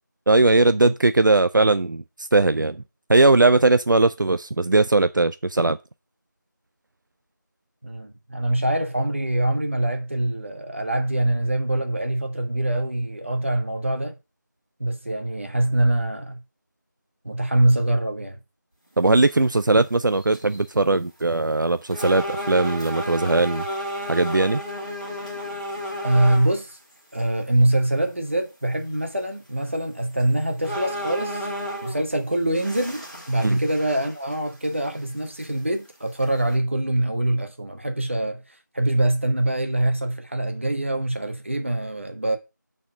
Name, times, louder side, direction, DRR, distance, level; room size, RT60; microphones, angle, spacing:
voice 1, 0.3-2.8 3.1-5.8 19.0-23.7 24.1-24.6 33.4-33.6, right 2 dB, 75° right, 0.5 m, -19 dB
voice 2, 7.8-14.1 14.8-16.4 17.2-18.4 26.0-26.8 27.1-31.5 31.8-38.4 38.7-42.4, right 1 dB, 40° right, 1.2 m, -24 dB
sound 1, 19.5-19.7 20.2-20.6 21.2-21.3 21.9-26.5 27.2-27.3 29.6-29.7 30.2-30.3 30.6-32.1 32.5-34.4 34.6-34.7 35.4-35.5 36.2-36.5, equal, 20° right, 2.2 m, -32 dB
6.3 x 4.3 x 5.9 m
figure-of-eight pair, 180°, 10 cm